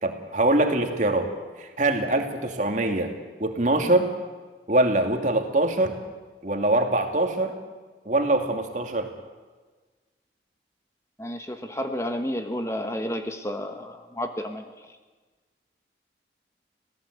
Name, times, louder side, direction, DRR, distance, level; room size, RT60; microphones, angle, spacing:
voice 1, 0.0-1.3 1.6-3.1 3.4-4.1 4.7-5.9 6.4-7.5 8.1-9.1, right 2 dB, 45° right, 4 dB, 2.5 m, -23 dB
voice 2, 11.2-14.6, equal, 15° left, 6 dB, 1.1 m, -31 dB
26.5 x 17.0 x 8.2 m, 1.4 s
head